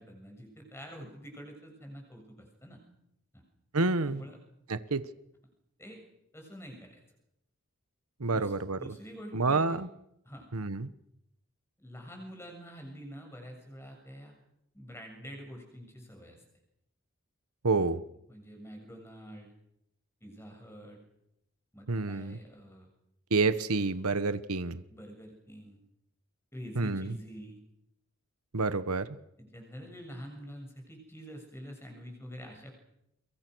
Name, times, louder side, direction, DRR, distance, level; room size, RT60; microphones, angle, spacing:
voice 1, 0.0-2.8 3.3-3.4 4.0-4.4 5.8-6.0 6.3-7.0 8.3-9.8 10.2-10.4 11.8-14.4 14.7-16.4 18.3-19.5 20.2-21.0 21.7-22.9 24.9-25.8 26.5-27.6 29.4-32.7, equal, 10° left, 3 dB, 6.9 m, -46 dB
voice 2, 3.7-4.2 4.7-5.0 8.2-8.8 9.3-9.9 10.5-10.9 17.6-18.0 21.9-22.4 23.3-24.8 26.8-27.2 28.5-29.2, right 3 dB, 85° right, 13 dB, 1.2 m, -28 dB
29.0 x 24.0 x 6.3 m, 0.80 s
head